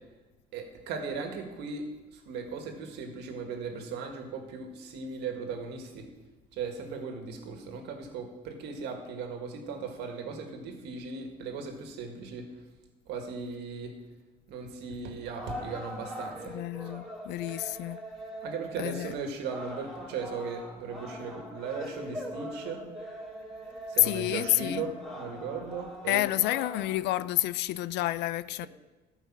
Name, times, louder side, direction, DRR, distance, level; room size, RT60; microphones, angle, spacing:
voice 1, 0.5-1.8 2.3-6.1 6.5-12.4 13.1-13.9 14.5-16.6 18.4-22.8 23.9-26.2, right 5 dB, 85° right, 1.8 m, -37 dB
sound 1, 15.3-26.9, right 1 dB, ahead, 2.9 m, -42 dB
voice 2, 16.5-18.0 18.8-19.1 24.0-24.8 26.1-28.7, left 16 dB, 85° left, 0.4 m, -29 dB
13.5 x 5.7 x 7.3 m
cardioid pair, 110°, 17 cm